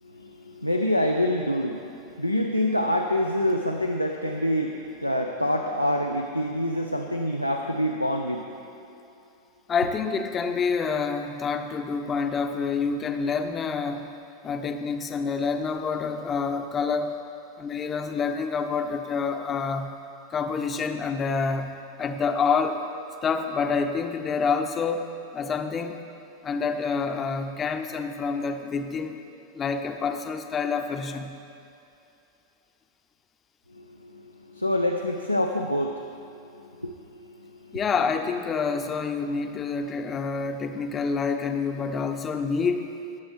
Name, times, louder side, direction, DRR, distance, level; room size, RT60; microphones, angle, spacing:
voice 1, 0.0-8.6 33.7-36.1 36.4-36.5 36.8-37.8, left 1 dB, 90° left, 2 dB, 0.5 m, -27 dB
voice 2, 9.7-14.1 14.4-17.2 17.6-20.0 20.3-22.8 23.2-26.0 26.4-29.2 29.5-31.4 37.7-42.9, left 5 dB, 25° left, 6 dB, 0.7 m, -27 dB
19.0 x 8.0 x 3.4 m, 2.7 s
figure-of-eight pair, 90°, 0 cm